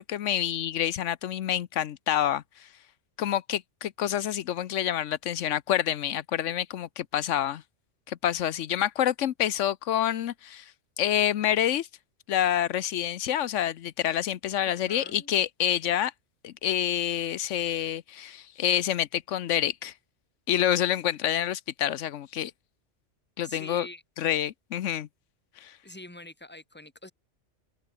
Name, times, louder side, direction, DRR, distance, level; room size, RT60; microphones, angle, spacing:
voice 1, 0.0-2.7 3.2-7.6 8.1-10.7 11.0-11.9 12.3-16.1 16.4-19.9 20.5-22.5 23.4-23.9 24.2-25.1 25.6-25.8, left 11 dB, 85° left, 1.1 m, -27 dB
voice 2, 14.7-15.3 23.4-24.0 25.8-27.1, left 1 dB, 10° left, 1.9 m, -45 dB
omnidirectional pair, 1.2 m